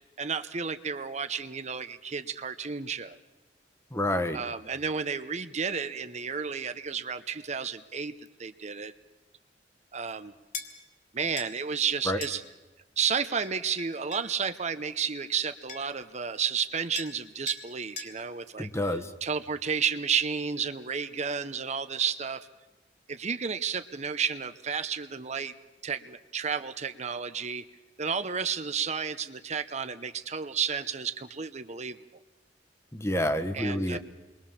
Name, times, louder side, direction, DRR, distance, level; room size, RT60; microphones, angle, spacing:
voice 1, 0.2-3.2 4.3-8.1 8.4-8.9 9.9-10.3 11.1-12.4 13.0-18.7 19.2-22.5 23.1-25.5 25.8-27.6 28.0-32.0 33.5-34.0, right 6 dB, 40° right, 10 dB, 0.9 m, -32 dB
voice 2, 3.9-4.4 12.0-12.2 18.6-19.1 32.9-34.0, left 1 dB, 15° left, 9 dB, 1.4 m, -28 dB
sound 1, 10.5-10.7 11.4-11.5 12.2-12.4 13.4-14.3 15.3-15.4 15.7-16.0 16.9-17.2 17.5-17.6 18.0-18.1, left 4 dB, 45° left, 2.9 m, -39 dB
28.5 x 22.5 x 7.3 m, 1.0 s
head